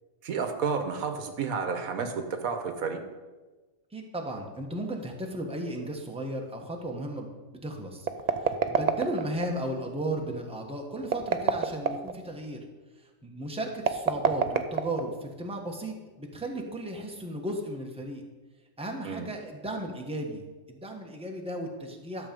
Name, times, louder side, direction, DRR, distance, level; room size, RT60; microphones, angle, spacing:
voice 1, 0.2-3.0 19.0-19.3, right 5 dB, 80° right, 7 dB, 1.4 m, -31 dB
voice 2, 3.9-7.3 7.6-8.1 8.4-12.6 13.2-18.2 18.8-20.4 20.7-22.3, right 1 dB, 5° right, 1 dB, 1.2 m, -35 dB
sound 1, 8.0-9.5 11.0-12.2 13.8-15.3, right 6 dB, 60° right, 0.4 m, -26 dB
12.0 x 7.1 x 5.3 m, 1.2 s
omnidirectional pair, 1.5 m